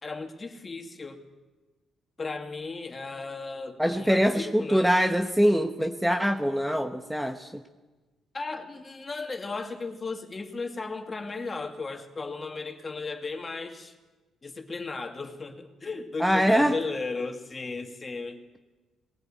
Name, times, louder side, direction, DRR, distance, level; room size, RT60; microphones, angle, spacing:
voice 1, 0.0-1.2 2.2-4.8 8.3-13.9 14.4-18.4, left 3 dB, 30° left, 5 dB, 2.4 m, -35 dB
voice 2, 3.8-7.6 16.2-16.8, equal, 5° right, 6 dB, 1.1 m, -23 dB
20.5 x 16.5 x 9.1 m, 1.2 s
cardioid pair, 90°, 0 cm